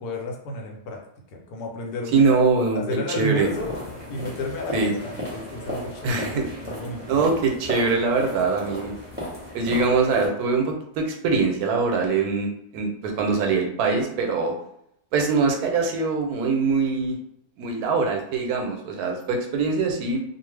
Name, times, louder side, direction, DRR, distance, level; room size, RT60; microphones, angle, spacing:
voice 1, 0.0-2.4 2.7-3.7 4.1-7.2, left 1 dB, 80° left, 1 dB, 1.1 m, -32 dB
voice 2, 2.1-2.8 3.2-3.5 4.7-4.9 6.0-6.5 7.1-8.9 9.5-12.5 12.7-14.5 15.1-17.2 17.6-20.2, right 4 dB, 80° right, 2 dB, 1.1 m, -23 dB
sound 1, 3.4-10.3, left 1 dB, 10° right, 0.6 m, -35 dB
2.5 x 2.4 x 3.2 m, 0.74 s
omnidirectional pair, 1.6 m